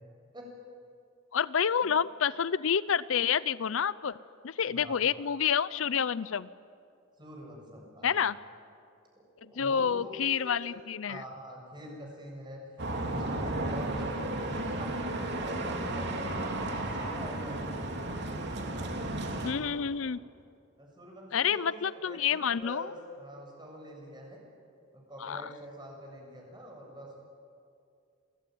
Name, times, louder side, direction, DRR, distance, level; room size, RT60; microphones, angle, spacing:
voice 1, 1.3-4.2 4.4-6.5 8.0-8.4 9.4-11.2 19.4-20.2 21.3-22.9 25.2-25.5, left 7 dB, 80° left, 18 dB, 0.6 m, -29 dB
voice 2, 7.2-8.3 9.2-10.2 11.1-12.7 13.0-17.7 20.8-24.4 24.9-27.2, equal, 25° right, 0 dB, 7.4 m, -45 dB
sound 1, 12.8-19.5, right 1 dB, 60° right, 3.1 m, -33 dB
28.0 x 21.0 x 9.3 m, 2.4 s
head